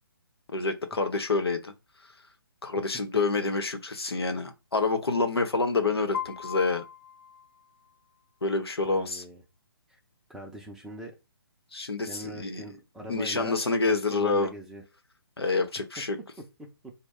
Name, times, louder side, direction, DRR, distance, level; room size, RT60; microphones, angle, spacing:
voice 1, 0.5-1.7 2.6-6.8 8.4-9.2 11.7-12.6 13.1-14.5 15.4-16.2, left 3 dB, 85° left, 0.8 m, -27 dB
Piano, 6.1-8.2, left 8 dB, 45° left, 0.6 m, -39 dB
voice 2, 8.8-9.4 9.9-10.0 10.3-11.1 12.0-13.6 13.9-14.8 16.6-16.9, equal, 5° right, 0.5 m, -42 dB
4.2 x 2.1 x 3.5 m
figure-of-eight pair, 140°, 13 cm